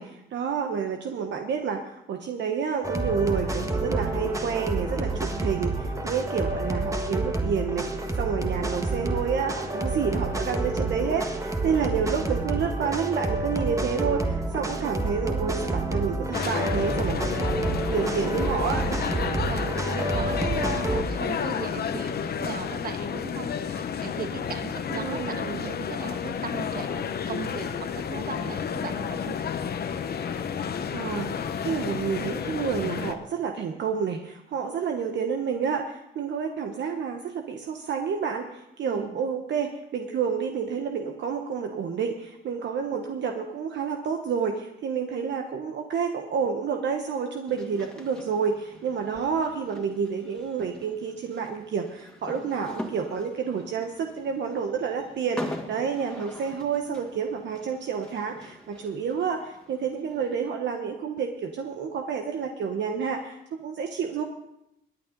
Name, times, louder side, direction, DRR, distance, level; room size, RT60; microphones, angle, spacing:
voice 1, 0.0-17.5 17.8-18.8 24.9-25.6 30.9-64.2, right 6 dB, 65° right, 4 dB, 1.1 m, -29 dB
sound 1, 2.8-21.0, right 2 dB, 15° right, 1.4 m, -28 dB
sound 2, 16.3-33.1, left 7 dB, 55° left, 0.9 m, -31 dB
voice 2, 19.4-29.4 38.8-39.2, right 6 dB, 50° right, 7 dB, 1.5 m, -38 dB
sound 3, 47.5-60.4, left 1 dB, 5° left, 2.0 m, -43 dB
22.0 x 9.0 x 3.9 m, 0.83 s
cardioid pair, 90°, 20 cm